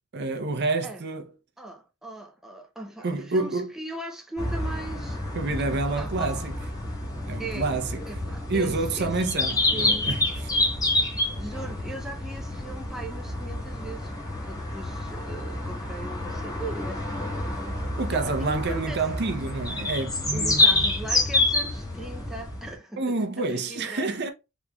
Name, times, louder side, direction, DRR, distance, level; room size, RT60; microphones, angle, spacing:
voice 1, 0.1-1.3 3.0-3.7 5.3-6.5 7.3-8.0 8.5-10.5 18.0-20.9 23.0-24.3, right 3 dB, 50° right, 0.6 m, -28 dB
voice 2, 1.6-5.2 5.9-6.5 7.4-7.7 8.1-9.1 9.7-10.1 11.0-11.1 11.4-17.0 17.3-17.7 18.1-19.0 20.3-24.2, right 1 dB, ahead, 0.5 m, -39 dB
sound 1, 4.4-22.8, left 2 dB, 15° left, 1.1 m, -28 dB
3.7 x 3.1 x 2.2 m
head